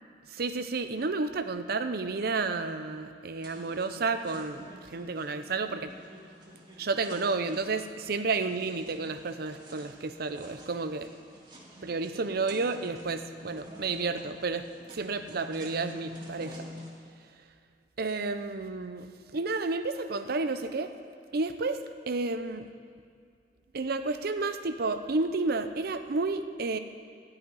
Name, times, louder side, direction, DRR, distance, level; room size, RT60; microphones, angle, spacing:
voice 1, 0.3-5.9 6.8-11.1 11.8-14.7 14.9-16.5 18.0-19.1 19.3-20.9 21.3-22.7 23.7-26.8, right 3 dB, 60° right, 9 dB, 0.7 m, -31 dB
sound 1, 3.4-16.9, left 1 dB, 25° right, 2.0 m, -48 dB
13.0 x 5.8 x 9.6 m, 2.2 s
head